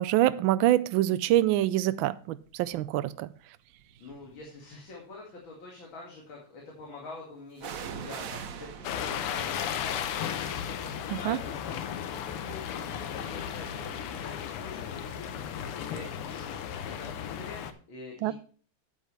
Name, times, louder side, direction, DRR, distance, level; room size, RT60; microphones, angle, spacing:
voice 1, 0.0-3.3 11.1-11.4 18.2-18.3, right 14 dB, 75° right, 1.2 m, -25 dB
sound 1, 2.7-3.0 3.7-4.7 7.6-15.2 15.5-15.6, right 7 dB, 55° right, 1.0 m, -45 dB
voice 2, 4.0-18.3, left 3 dB, 65° left, 2.8 m, -46 dB
sound 2, 8.8-17.7, left 9 dB, 85° left, 1.8 m, -35 dB
9.3 x 9.0 x 3.2 m
omnidirectional pair, 2.4 m